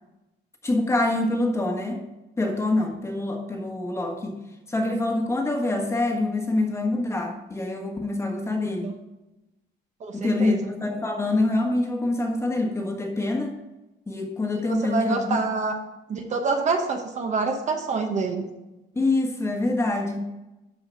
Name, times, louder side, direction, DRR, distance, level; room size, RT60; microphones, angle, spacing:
voice 1, 0.6-2.0 2.4-4.4 4.7-8.9 10.1-13.6 14.1-15.4 18.9-20.2, left 2 dB, 15° left, 2 dB, 1.4 m, -25 dB
voice 2, 8.6-8.9 10.0-10.7 14.5-15.7 16.1-18.5, right 4 dB, 40° right, 4 dB, 1.1 m, -27 dB
12.5 x 4.9 x 5.7 m, 1.0 s
cardioid pair, 170°, 19 cm